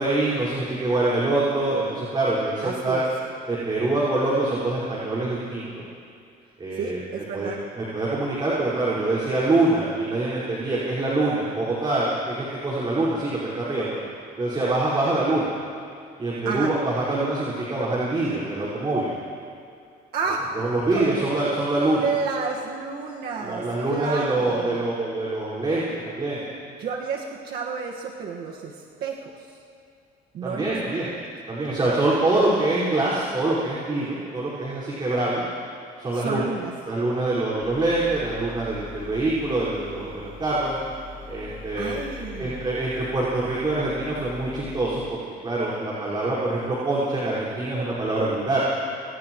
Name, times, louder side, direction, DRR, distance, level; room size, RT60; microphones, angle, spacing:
voice 1, 0.0-3.0 3.5-5.8 6.6-7.0 7.3-7.5 7.8-14.0 14.4-15.5 16.2-19.1 20.6-22.1 23.4-26.4 30.4-31.1 31.5-35.4 36.0-36.4 36.9-40.8 41.3-42.0 42.3-48.6, right 2 dB, 30° right, -7 dB, 5.4 m, -25 dB
voice 2, 2.6-3.0 6.7-7.6 16.4-16.7 20.1-20.5 20.9-21.1 22.0-24.8 26.8-29.6 30.3-31.2 36.1-36.7 41.7-42.6, right 5 dB, 70° right, -1 dB, 1.8 m, -31 dB
sound 1, 37.6-45.0, left 5 dB, 60° left, 7.2 m, -42 dB
29.0 x 27.5 x 3.2 m, 2.4 s
cardioid pair, 110°, 17 cm